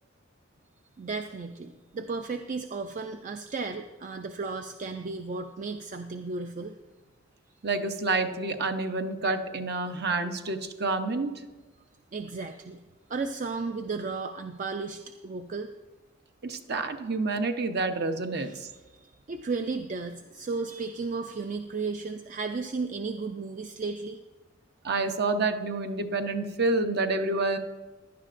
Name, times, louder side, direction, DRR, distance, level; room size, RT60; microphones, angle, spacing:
voice 1, 1.0-6.7 12.1-12.8 13.1-15.7 18.4-18.6 18.9-24.2, right 4 dB, 40° right, 6 dB, 0.4 m, -34 dB
voice 2, 7.6-11.3 16.4-18.7 24.8-27.6, right 3 dB, 55° right, 7 dB, 0.8 m, -28 dB
16.5 x 11.0 x 2.5 m, 1.2 s
head